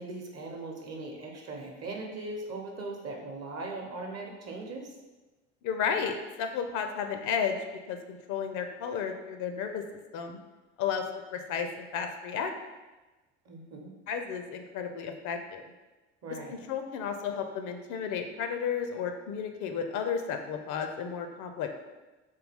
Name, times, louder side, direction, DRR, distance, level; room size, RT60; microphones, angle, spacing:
voice 1, 0.0-4.9 13.4-13.9 16.2-16.6, right 2 dB, 45° right, 1 dB, 0.8 m, -39 dB
voice 2, 5.6-7.6 7.9-9.8 10.1-10.4 10.8-11.0 11.3-12.5 14.1-15.7 16.5-21.7, left 7 dB, 60° left, 6 dB, 0.5 m, -33 dB
3.5 x 2.3 x 3.4 m, 1.2 s
hypercardioid pair, 65°, 34 cm